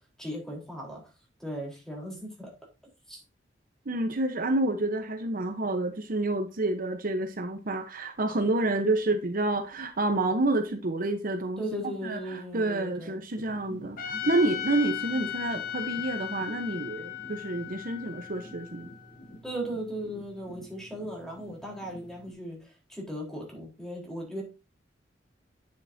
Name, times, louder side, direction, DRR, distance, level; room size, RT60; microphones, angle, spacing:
voice 1, 0.2-1.0 1.4-2.5 3.1-3.2 8.7-8.9 11.6-13.2 19.4-22.6 22.9-24.4, equal, 5° left, 3.8 m, -37 dB
voice 2, 3.9-11.6 12.0-18.9, right 2 dB, 50° right, 0.9 m, -29 dB
sound 1, 13.3-22.3, equal, 65° left, 3.7 m, -49 dB
Trumpet, 14.0-19.2, left 11 dB, 50° left, 1.4 m, -36 dB
9.4 x 7.8 x 2.7 m
head